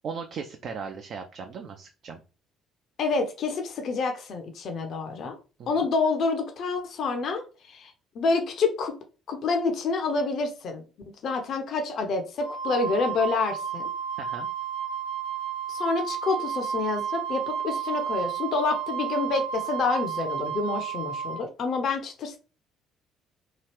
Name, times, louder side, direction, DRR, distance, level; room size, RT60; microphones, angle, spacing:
voice 1, 0.0-2.2 5.6-5.9 14.2-14.5, right 5 dB, 55° right, 5 dB, 0.4 m, -37 dB
voice 2, 3.0-5.4 5.7-8.9 9.3-10.8 11.2-13.9 15.7-22.4, left 4 dB, 55° left, 4 dB, 0.5 m, -28 dB
Wind instrument woodwind instrument, 12.4-21.4, right 8 dB, 80° left, 1.0 m, -32 dB
2.8 x 2.4 x 3.3 m, 0.35 s
hypercardioid pair, 50°, 0 cm